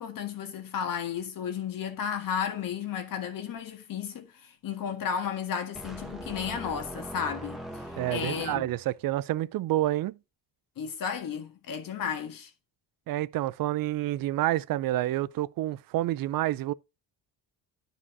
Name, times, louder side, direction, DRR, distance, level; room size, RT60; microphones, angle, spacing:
voice 1, 0.0-7.6 8.1-8.7 10.8-12.5, left 7 dB, 50° left, 1.7 m, -33 dB
sound 1, 5.8-8.9, equal, ahead, 1.2 m, -40 dB
voice 2, 8.0-10.2 13.1-16.7, right 15 dB, 50° right, 0.4 m, -28 dB
12.0 x 5.0 x 2.6 m
cardioid pair, 170°, 44 cm